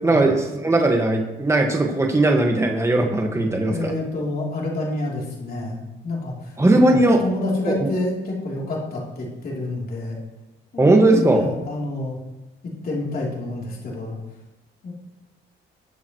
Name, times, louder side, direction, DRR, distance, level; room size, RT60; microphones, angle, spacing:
voice 1, 0.0-3.9 6.6-7.2 7.7-7.9 10.8-11.5, right 2 dB, 15° right, 1 dB, 1.6 m, -18 dB
voice 2, 3.5-6.5 6.8-10.2 10.7-12.2 12.8-14.2 14.8-14.9, left 2 dB, 50° left, -3 dB, 3.3 m, -28 dB
19.0 x 7.1 x 3.1 m, 1.0 s
cardioid pair, 90°, 20 cm